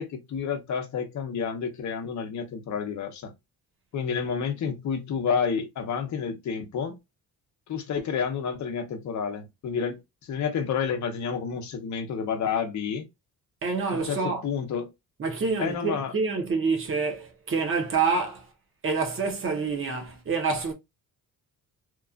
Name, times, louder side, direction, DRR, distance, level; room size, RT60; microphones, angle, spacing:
voice 1, 0.0-3.3 3.9-6.9 7.7-13.1 13.9-14.9 15.6-16.1, left 6 dB, 50° left, 0.8 m, -30 dB
voice 2, 13.6-14.4 15.2-18.5 18.8-20.7, right 4 dB, 35° right, 0.9 m, -27 dB
2.9 x 2.4 x 2.3 m
cardioid pair, 140°, 36 cm